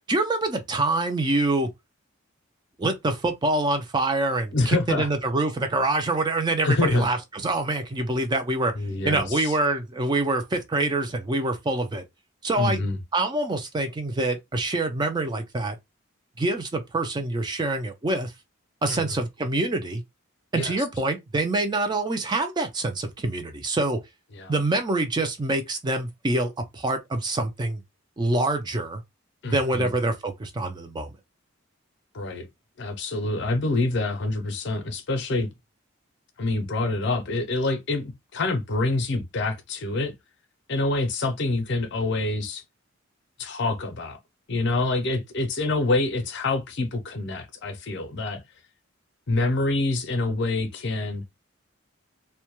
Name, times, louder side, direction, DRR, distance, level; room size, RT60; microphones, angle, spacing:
voice 1, 0.1-1.7 2.8-8.7 9.0-12.0 12.4-12.8 13.1-15.8 16.4-18.3 18.8-20.0 20.5-24.0 24.5-27.8 28.2-29.0 29.4-31.1, right 2 dB, 20° right, 0.3 m, -25 dB
voice 2, 4.5-5.1 6.6-7.1 8.8-9.4 12.6-13.0 18.9-19.0 20.5-20.7 24.3-24.5 29.4-29.9 32.1-32.5 32.8-35.5 36.4-40.1 40.7-42.6 43.4-44.2 44.5-48.4 49.3-51.2, left 2 dB, 55° left, 0.5 m, -26 dB
2.1 x 2.1 x 2.9 m
head